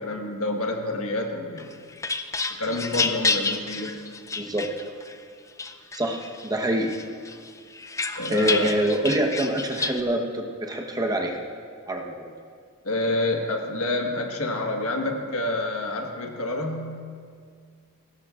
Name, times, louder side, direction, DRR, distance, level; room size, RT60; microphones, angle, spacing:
voice 1, 0.0-1.7 2.6-4.0 8.2-8.7 12.8-17.0, left 2 dB, 70° left, 2 dB, 1.5 m, -28 dB
sound 1, 1.6-5.1 5.6-6.5 6.9-10.0, left 4 dB, 15° left, 0.5 m, -29 dB
voice 2, 4.4-4.7 5.9-6.9 8.3-11.4 11.9-12.3, right 1 dB, 15° right, 1 dB, 1.1 m, -25 dB
20.5 x 17.0 x 2.5 m, 2.1 s
head